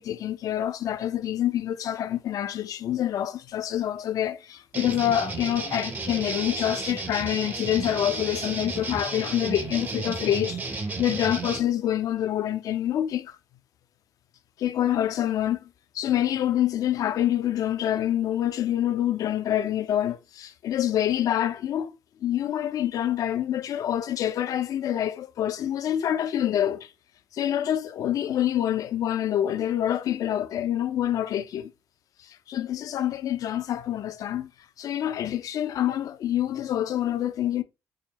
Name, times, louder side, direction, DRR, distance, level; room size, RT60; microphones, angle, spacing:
voice 1, 0.0-13.4 14.6-15.7 15.9-22.0 22.2-26.9 27.3-31.7 32.2-34.5 34.8-37.6, left 11 dB, 65° left, 0.4 m, -26 dB
sound 1, 4.7-11.6, right 3 dB, 30° right, 0.7 m, -33 dB
4.8 x 2.1 x 2.9 m
supercardioid pair, 70°, 7 cm